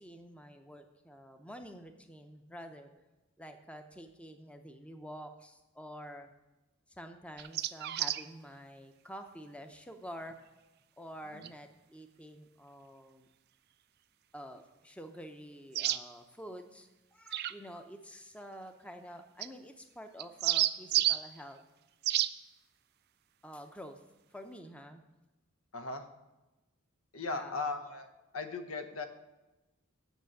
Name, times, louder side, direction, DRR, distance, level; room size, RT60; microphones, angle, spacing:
voice 1, 0.0-2.9 3.4-6.3 7.0-10.4 11.0-13.3 14.3-21.6 23.4-24.0 24.3-25.0 27.3-27.6, equal, 5° left, 6 dB, 0.6 m, -48 dB
sound 1, 7.4-8.2 11.4-11.5 15.7-16.0 17.3-17.5 19.4-19.5 20.2-21.2 22.0-22.3, right 14 dB, 50° right, 0.4 m, -29 dB
voice 2, 25.7-26.0 27.1-29.1, left 3 dB, 85° left, 7 dB, 1.0 m, -38 dB
8.2 x 6.2 x 7.5 m, 1.1 s
head